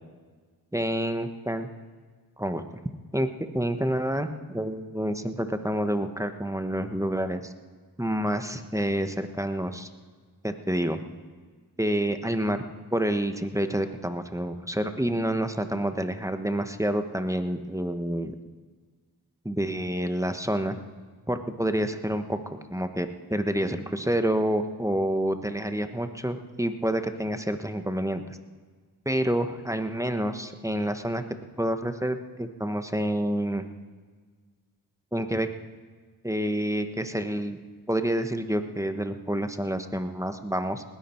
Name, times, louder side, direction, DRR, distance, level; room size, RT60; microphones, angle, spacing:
voice 1, 0.7-1.7 2.4-2.6 3.1-3.3 3.5-7.5 8.0-9.9 10.4-11.0 11.8-12.6 12.9-18.3 19.4-20.8 21.3-28.4 29.0-31.2 31.6-33.6 35.1-35.5 36.2-37.6 37.9-40.8, right 1 dB, 10° right, 7 dB, 1.3 m, -28 dB
20.0 x 13.5 x 4.5 m, 1.5 s
cardioid pair, 45°, 40 cm